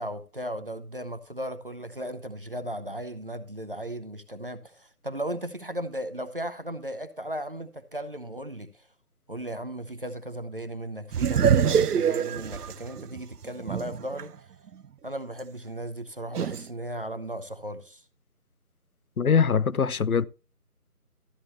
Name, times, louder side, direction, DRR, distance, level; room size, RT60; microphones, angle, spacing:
voice 1, 0.0-8.9 9.3-14.4 15.0-18.0, right 1 dB, 35° right, 0.7 m, -36 dB
sound 1, 11.1-14.2 14.7-14.8 16.3-16.6, right 8 dB, 85° right, 0.5 m, -24 dB
voice 2, 19.2-20.2, left 6 dB, 70° left, 0.6 m, -22 dB
13.0 x 8.5 x 2.9 m
figure-of-eight pair, 165°, 45 cm